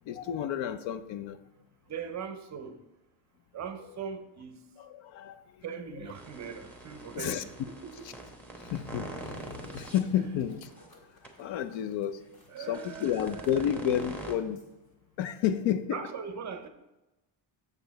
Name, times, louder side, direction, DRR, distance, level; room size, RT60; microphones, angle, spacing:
voice 1, 0.1-1.4 4.8-5.4 7.1-7.4 8.6-10.7 11.4-12.2 12.7-14.6 15.2-16.0, left 10 dB, 65° left, 12 dB, 0.6 m, -31 dB
voice 2, 1.9-2.8 3.5-4.6 5.6-7.5 7.8-8.1 10.2-10.3 12.5-13.9 15.9-16.7, right 6 dB, 35° right, 8 dB, 0.5 m, -40 dB
sound 1, 6.1-10.0 10.6-10.8 11.2-11.3 12.6-14.3, right 1 dB, 5° left, 0.8 m, -44 dB
sound 2, 9.4-14.9, left 1 dB, 50° left, 1.7 m, -59 dB
7.0 x 6.8 x 4.0 m, 0.99 s
cardioid pair, 165°, 49 cm